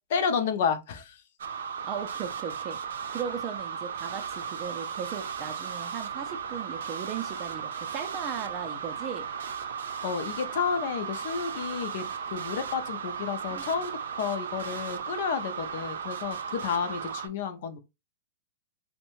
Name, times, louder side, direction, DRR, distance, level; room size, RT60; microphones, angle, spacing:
voice 1, 0.1-1.2 10.0-13.9 14.2-17.8, left 6 dB, 50° left, 0.5 m, -31 dB
sound 1, 1.4-17.3, right 7 dB, 85° right, 0.5 m, -36 dB
voice 2, 1.8-2.8 3.1-9.3 13.5-13.7, right 7 dB, 25° right, 0.4 m, -37 dB
2.7 x 2.1 x 2.9 m
supercardioid pair, 170°, 0 cm